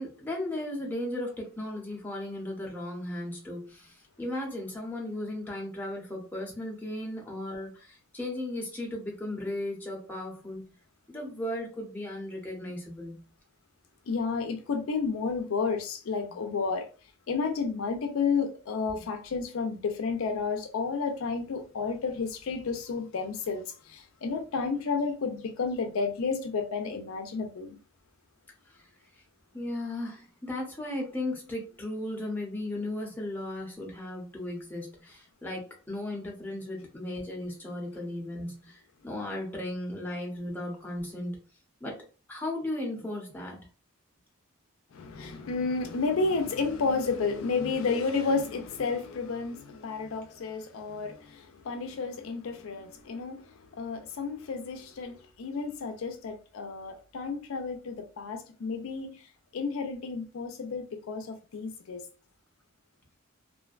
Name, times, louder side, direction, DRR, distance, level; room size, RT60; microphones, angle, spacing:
voice 1, 0.0-10.6 11.1-13.2 28.7-28.9 29.5-41.4 41.8-42.0 42.3-43.6, left 1 dB, 10° left, 0.7 m, -36 dB
voice 2, 14.1-16.9 17.3-27.8 44.9-53.5 53.7-59.2 59.5-62.0, left 4 dB, 70° left, 0.4 m, -31 dB
2.4 x 2.1 x 2.3 m
head